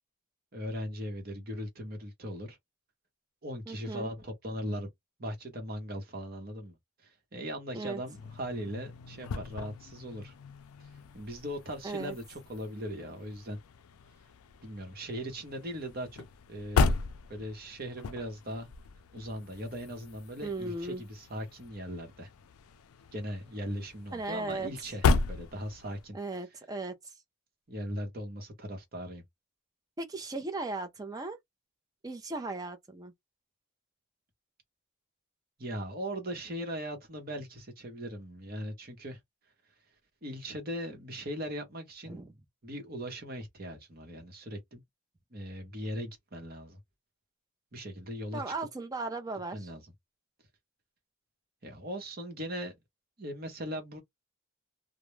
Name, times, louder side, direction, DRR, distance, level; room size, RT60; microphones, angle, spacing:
voice 1, 0.5-2.6 3.4-4.9 5.2-6.8 7.0-10.3 10.8-13.6 14.6-16.2 16.5-17.0 17.3-18.7 19.1-22.3 23.1-26.2 27.7-29.2 35.6-39.2 40.2-42.2 42.6-44.8 45.3-46.8 47.7-48.5 49.5-49.8 51.6-52.7 53.2-54.0, equal, 45° right, 0.9 m, -39 dB
voice 2, 3.7-4.1 7.7-8.0 11.8-12.1 20.4-21.0 24.1-24.7 26.1-27.2 30.0-31.4 32.0-33.1 42.1-42.3 48.3-49.7, right 3 dB, 15° right, 0.5 m, -37 dB
sound 1, 8.0-26.1, left 4 dB, 80° left, 0.4 m, -36 dB
2.4 x 2.0 x 3.1 m
head